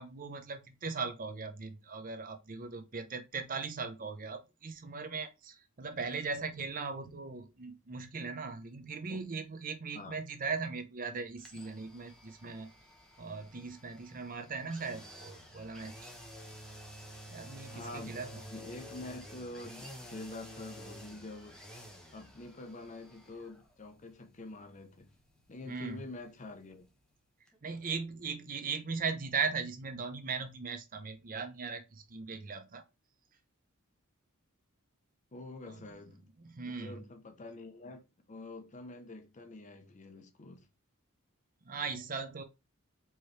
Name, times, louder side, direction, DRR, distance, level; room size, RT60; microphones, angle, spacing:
voice 1, 0.0-12.7 13.2-16.1 17.3-18.4 25.7-26.0 27.6-32.8 35.7-35.8 36.4-37.1 41.6-42.4, right 5 dB, 40° right, 0.6 m, -39 dB
sound 1, 11.4-27.2 27.5-27.6, equal, 5° left, 0.9 m, -52 dB
voice 2, 17.7-21.6 22.1-25.1 25.5-26.9 35.3-36.3 36.6-40.7, left 2 dB, 35° left, 0.7 m, -46 dB
4.6 x 3.0 x 3.2 m
head